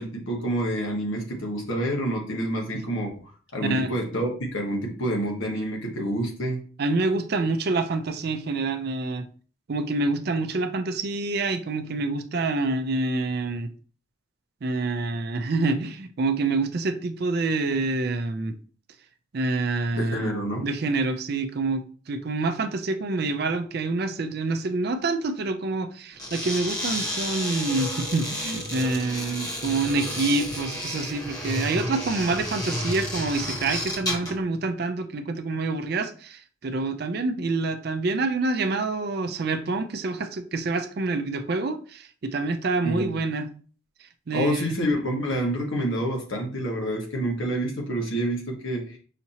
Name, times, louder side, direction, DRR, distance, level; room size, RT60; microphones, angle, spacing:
voice 1, 0.0-3.1 3.5-6.6 19.9-20.7 42.8-43.1 44.3-49.0, right 1 dB, 70° left, 1.4 m, -28 dB
voice 2, 3.6-3.9 6.8-9.3 9.7-13.7 14.6-18.5 19.3-20.3 20.6-43.5 44.3-44.7, right 3 dB, 50° right, 0.4 m, -27 dB
sound 1, 26.1-34.4, equal, 20° left, 1.1 m, -31 dB
5.7 x 2.8 x 2.8 m
head